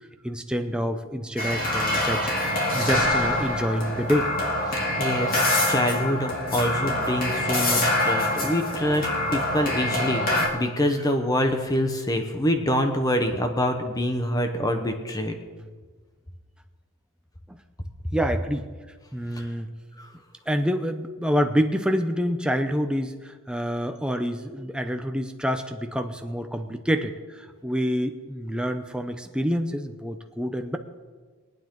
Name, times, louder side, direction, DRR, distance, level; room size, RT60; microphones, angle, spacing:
voice 1, 0.2-4.3 17.5-17.6 18.1-18.7 19.1-19.7 20.5-30.8, equal, 5° right, 6 dB, 0.7 m, -27 dB
sound 1, 1.4-10.5, left 1 dB, 40° left, 2.9 m, -25 dB
voice 2, 4.7-15.4 19.4-19.5 20.0-20.1, equal, 15° left, 5 dB, 1.1 m, -26 dB
22.5 x 9.3 x 3.9 m, 1.5 s
head